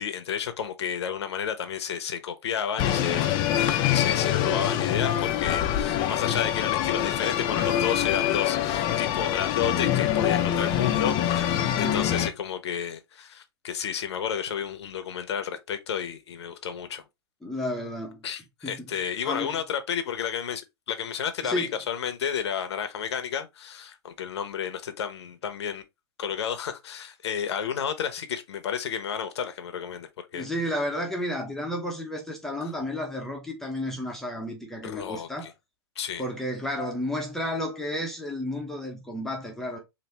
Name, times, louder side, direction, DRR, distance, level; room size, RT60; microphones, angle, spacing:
voice 1, 0.0-3.4 3.9-11.5 11.8-17.0 18.2-20.6 20.9-25.8 26.2-30.5 32.6-32.7 34.8-35.5 36.0-36.2, left 8 dB, 85° left, 0.9 m, -31 dB
sound 1, 2.8-12.3, left 11 dB, 35° left, 0.6 m, -25 dB
voice 2, 11.6-12.0 17.4-18.2 18.6-18.8 19.2-19.5 21.4-21.7 30.3-35.5 36.2-39.8, left 1 dB, 5° left, 0.9 m, -32 dB
4.1 x 2.7 x 3.3 m
hypercardioid pair, 140°, 14 cm